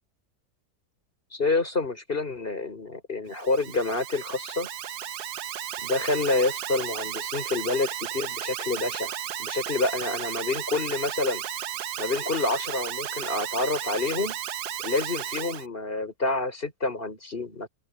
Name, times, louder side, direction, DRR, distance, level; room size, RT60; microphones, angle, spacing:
voice 1, 1.3-4.7 5.8-11.4 12.0-14.4 14.8-17.7, left 3 dB, 35° left, 4.6 m, -28 dB
Alarm, 3.3-15.7, right 10 dB, 75° right, 1.4 m, -34 dB
open air
omnidirectional pair, 1.7 m